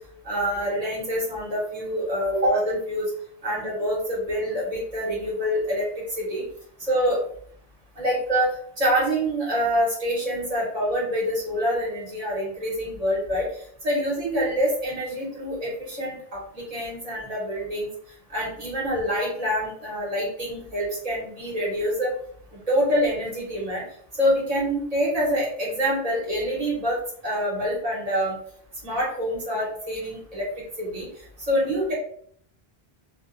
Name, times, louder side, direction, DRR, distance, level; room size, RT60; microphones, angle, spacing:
voice 1, 0.2-3.1 3.4-6.4 6.8-7.2 8.0-8.5 8.8-13.5 13.8-17.9 18.3-22.1 22.7-23.8 24.2-28.4 28.8-30.5 30.8-31.1 31.5-31.9, equal, 40° right, -5 dB, 1.0 m, -26 dB
2.4 x 2.1 x 2.4 m, 0.62 s
omnidirectional pair, 1.1 m